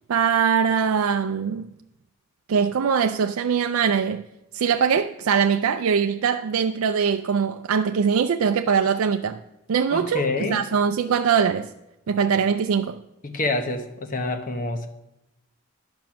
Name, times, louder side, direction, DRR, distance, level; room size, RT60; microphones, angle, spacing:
voice 1, 0.1-1.6 2.5-4.2 4.5-9.4 9.7-11.7 12.1-13.0, right 6 dB, 85° right, 0.4 m, -22 dB
voice 2, 9.9-10.7 13.2-14.9, left 2 dB, 40° left, 1.0 m, -27 dB
10.5 x 6.1 x 5.9 m
head